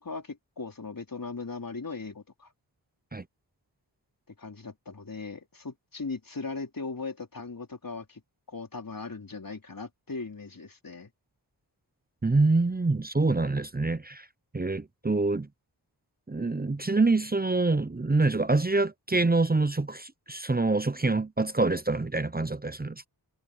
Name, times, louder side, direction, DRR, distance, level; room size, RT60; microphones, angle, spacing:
voice 1, 0.0-2.5 4.4-8.2 8.5-11.1, left 4 dB, 50° left, 4.3 m, -38 dB
voice 2, 12.2-14.3 14.5-15.5 16.3-23.1, right 3 dB, 20° right, 0.8 m, -26 dB
cardioid pair, 45°, 42 cm